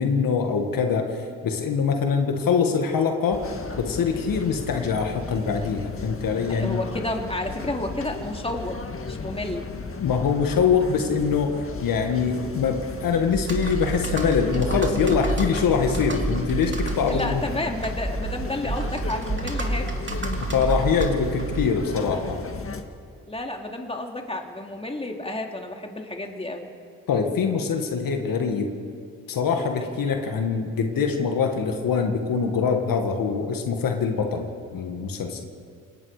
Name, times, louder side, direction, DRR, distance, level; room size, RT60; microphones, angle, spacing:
voice 1, 0.0-3.4 3.8-6.8 10.0-17.4 20.4-22.4 27.1-28.7 29.3-34.5 34.7-35.4, left 6 dB, 70° left, 4 dB, 2.0 m, -24 dB
sound 1, 3.3-22.8, left 4 dB, 40° left, 1.9 m, -35 dB
voice 2, 6.5-9.7 17.1-20.0 23.3-26.7, left 1 dB, 15° left, 2 dB, 3.0 m, -31 dB
Computer keyboard, 13.3-21.9, right 2 dB, 35° right, 3.3 m, -30 dB
28.0 x 19.0 x 5.1 m, 2.4 s
supercardioid pair, 60°, 35 cm